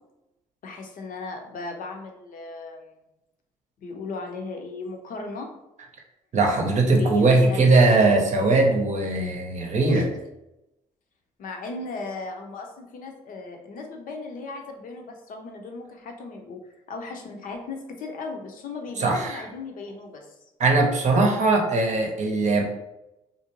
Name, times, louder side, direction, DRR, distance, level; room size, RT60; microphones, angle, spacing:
voice 1, 0.6-2.9 3.8-5.5 6.9-8.0 9.9-10.1 11.4-16.6 16.9-20.3, left 3 dB, 60° left, 3 dB, 0.6 m, -36 dB
voice 2, 6.3-10.1 19.0-19.5 20.6-22.6, right 3 dB, 45° right, 1 dB, 0.7 m, -20 dB
2.4 x 2.1 x 3.0 m, 0.91 s
hypercardioid pair, 50°, 16 cm